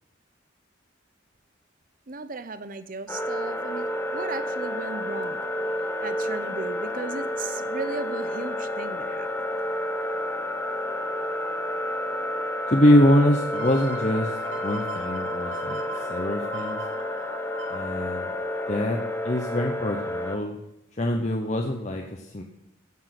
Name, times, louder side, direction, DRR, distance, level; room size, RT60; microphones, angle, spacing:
voice 1, 2.1-5.4 6.0-9.5, right 3 dB, 45° right, 12 dB, 0.8 m, -36 dB
sound 1, 3.1-20.4, left 1 dB, 10° left, 1.1 m, -30 dB
voice 2, 12.7-14.3 14.6-15.8 16.1-16.8 17.7-18.3 18.7-19.0 19.2-20.6 21.0-22.4, left 1 dB, 35° left, 2 dB, 1.0 m, -23 dB
sound 2, 13.5-19.0 19.5-19.6, right 5 dB, 75° right, 2.1 m, -41 dB
15.5 x 7.4 x 6.0 m, 0.81 s
head